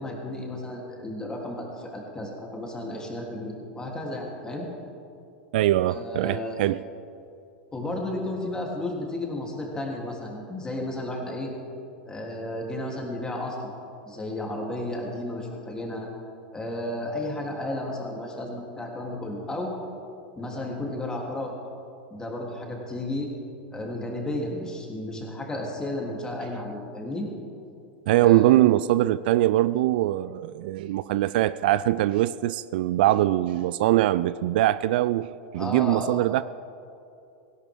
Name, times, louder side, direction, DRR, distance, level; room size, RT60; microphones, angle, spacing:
voice 1, 0.0-4.7 5.9-6.6 7.7-11.5 12.1-13.7 14.1-16.1 16.5-19.7 20.4-21.5 22.1-23.3 23.7-27.3 28.2-28.5 35.6-36.2, left 1 dB, 15° left, -1 dB, 3.3 m, -33 dB
voice 2, 5.5-6.8 28.1-36.4, right 15 dB, 65° right, 17 dB, 0.3 m, -22 dB
18.0 x 16.5 x 3.7 m, 2.6 s
hypercardioid pair, 95°, 6 cm